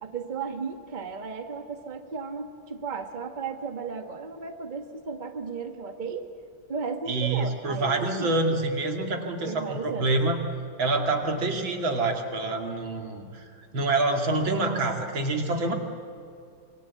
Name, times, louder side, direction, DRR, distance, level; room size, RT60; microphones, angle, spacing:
voice 1, 0.0-6.3 6.7-8.3 9.4-10.1, right 5 dB, 25° right, 5 dB, 1.5 m, -35 dB
voice 2, 7.1-10.4 10.8-13.4 13.7-15.7, right 2 dB, 80° right, 3 dB, 3.3 m, -26 dB
26.5 x 23.5 x 8.4 m, 2.4 s
omnidirectional pair, 2.1 m